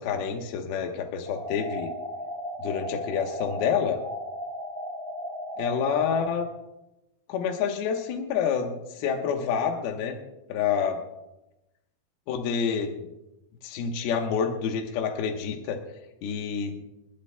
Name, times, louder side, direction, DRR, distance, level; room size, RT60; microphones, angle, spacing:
voice 1, 0.0-1.9 2.6-4.0 5.6-6.5 7.3-10.2 10.5-11.0 12.3-13.0 13.6-15.8 16.2-16.8, left 7 dB, 70° left, 2 dB, 2.9 m, -28 dB
sound 1, 1.3-6.3, equal, 15° left, 1.5 m, -35 dB
29.0 x 12.0 x 2.2 m, 0.92 s
omnidirectional pair, 4.8 m